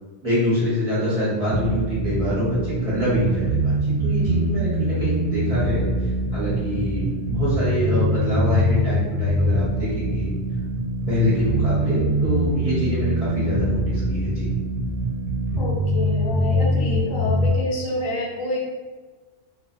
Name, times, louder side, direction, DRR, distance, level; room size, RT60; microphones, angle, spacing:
voice 1, 0.2-10.3 11.1-14.5, left 1 dB, 35° right, -9 dB, 0.8 m, -25 dB
sound 1, 1.5-17.5, right 1 dB, 70° right, 0.8 m, -23 dB
voice 2, 15.6-18.7, left 1 dB, 90° left, -3 dB, 1.0 m, -28 dB
2.4 x 2.3 x 2.3 m, 1.3 s
omnidirectional pair, 1.3 m